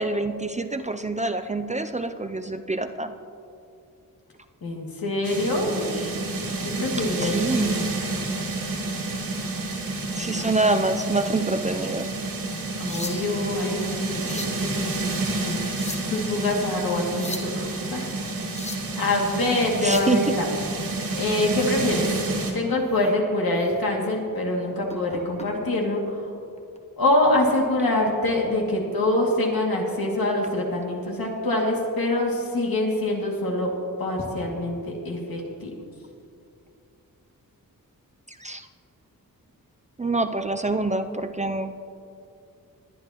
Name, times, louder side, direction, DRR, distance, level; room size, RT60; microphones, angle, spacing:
voice 1, 0.0-3.1 7.2-7.9 10.1-12.1 19.8-20.3 38.4-38.7 40.0-41.8, right 2 dB, 20° right, 8 dB, 0.4 m, -26 dB
voice 2, 4.6-6.1 6.6-7.7 10.2-10.6 12.8-15.1 15.4-15.6 16.1-18.1 19.0-20.5 21.1-22.1 22.5-26.3 27.0-33.7 34.0-35.7, left 1 dB, 80° left, -1 dB, 2.4 m, -25 dB
sound 1, 5.2-22.5, right 2 dB, 75° right, 2.4 m, -29 dB
sound 2, 12.6-13.5 14.0-14.6 15.5-16.2 17.0-17.5 18.3-18.9 19.6-20.2 22.2-22.4 22.9-23.1 23.6-23.7 24.9-25.5 26.6-26.8, left 2 dB, 20° left, 0.9 m, -38 dB
21.5 x 10.0 x 3.0 m, 2.6 s
wide cardioid pair, 140°, 35 cm